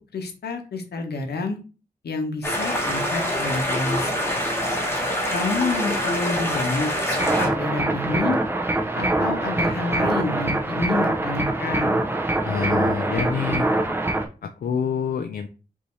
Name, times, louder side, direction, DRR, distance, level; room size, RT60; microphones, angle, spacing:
voice 1, 0.1-1.6 2.0-4.1 5.3-8.4 8.9-12.0, left 3 dB, 80° left, 5 dB, 1.0 m, -28 dB
sound 1, 2.4-7.5, equal, 15° left, 1.1 m, -25 dB
sound 2, 7.2-14.2, right 2 dB, 15° right, 0.6 m, -24 dB
voice 2, 12.4-13.7 14.4-15.5, left 6 dB, 65° left, 6 dB, 0.4 m, -26 dB
5.4 x 2.7 x 3.1 m, 0.34 s
wide cardioid pair, 175°, 17 cm